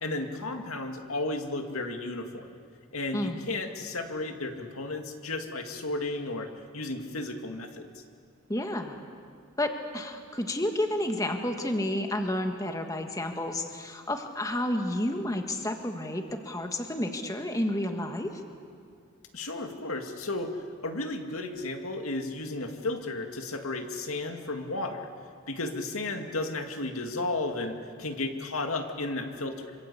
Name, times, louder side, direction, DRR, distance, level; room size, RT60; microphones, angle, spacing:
voice 1, 0.0-2.5 2.9-6.5 6.7-7.9 19.3-25.1 25.5-29.8, left 2 dB, 85° left, 5 dB, 2.3 m, -33 dB
voice 2, 8.5-9.0 9.6-18.3, left 1 dB, 15° left, 4 dB, 1.6 m, -30 dB
26.5 x 25.0 x 8.5 m, 2.2 s
head